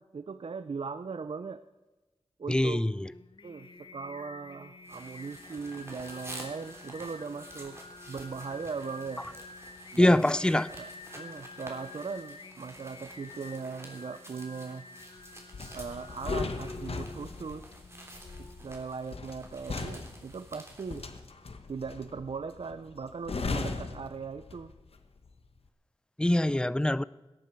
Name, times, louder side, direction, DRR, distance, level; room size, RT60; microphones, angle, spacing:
voice 1, 0.0-1.6 2.4-2.8 3.4-7.8 8.1-9.2 9.9-10.4 10.7-10.9 11.2-14.9 15.7-17.7 18.4-21.0 21.7-24.7, right 5 dB, 65° right, 0.6 m, -39 dB
voice 2, 2.5-3.1 10.0-10.7 26.2-27.0, left 1 dB, 10° left, 0.4 m, -24 dB
Singing, 2.9-19.1, left 3 dB, 55° left, 1.0 m, -49 dB
sound 1, 4.8-21.1, right 1 dB, 25° right, 3.2 m, -50 dB
sound 2, 15.5-24.9 25.2-25.5, left 3 dB, 80° left, 1.3 m, -38 dB
18.0 x 13.5 x 4.6 m
wide cardioid pair, 95°, 10 cm